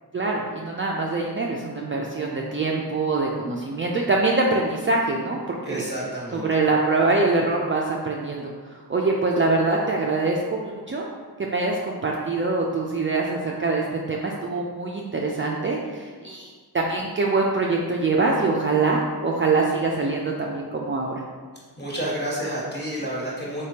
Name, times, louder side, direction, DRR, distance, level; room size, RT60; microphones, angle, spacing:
voice 1, 0.1-5.8 6.3-11.0 11.4-21.2, right 3 dB, 30° right, -2 dB, 0.4 m, -24 dB
voice 2, 5.6-6.5 21.8-23.7, right 1 dB, 25° left, -6 dB, 1.4 m, -30 dB
3.4 x 3.3 x 2.8 m, 1.5 s
cardioid pair, 50°, 40 cm